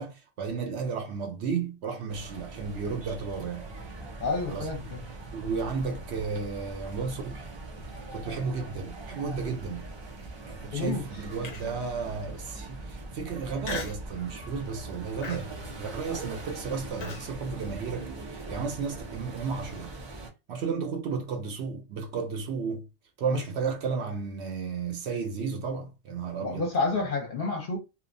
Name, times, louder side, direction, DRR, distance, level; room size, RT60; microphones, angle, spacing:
voice 1, 0.0-3.7 4.5-4.7 5.3-7.5 8.1-9.9 10.5-19.9 20.5-22.9 23.2-26.7 27.0-27.1, right 5 dB, 65° right, 0.8 m, -33 dB
sound 1, 2.1-20.3, right 2 dB, 45° right, 0.3 m, -41 dB
voice 2, 4.2-5.0 10.7-11.1 16.1-16.4 23.3-23.4 26.4-27.8, left 3 dB, 50° left, 0.8 m, -30 dB
Human voice, 11.4-11.9 12.4-12.5 13.6-14.1 14.5-14.8 15.2-17.3, left 4 dB, 70° left, 0.4 m, -38 dB
2.8 x 2.1 x 2.5 m
omnidirectional pair, 1.3 m